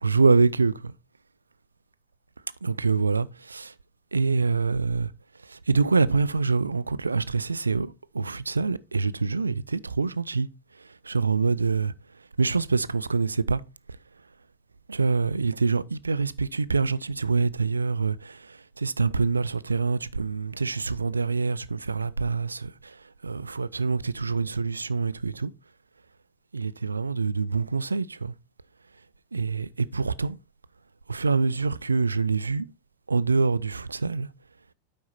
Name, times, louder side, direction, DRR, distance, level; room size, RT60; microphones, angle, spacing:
voice 1, 0.0-0.9 2.6-3.7 4.1-5.1 5.4-10.5 10.8-11.9 12.4-13.6 14.9-25.5 26.5-28.3 29.3-30.4 31.1-32.7 33.1-34.3, right 4 dB, 80° right, 0.4 m, -25 dB
8.4 x 5.4 x 4.2 m
figure-of-eight pair, 90°, 0 cm